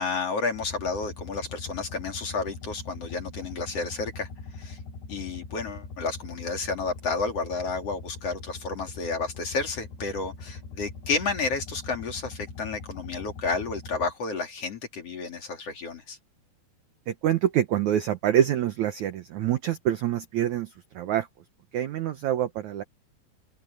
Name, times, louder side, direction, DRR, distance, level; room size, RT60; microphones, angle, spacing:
voice 1, 0.0-4.3 4.6-4.8 5.1-16.2, left 4 dB, 40° left, 3.1 m, -31 dB
sound 1, 0.5-14.1, left 4 dB, 80° left, 10.0 m, -42 dB
voice 2, 17.1-20.7 20.9-21.3 21.7-22.8, right 11 dB, 80° right, 1.7 m, -26 dB
open air
omnidirectional pair, 4.8 m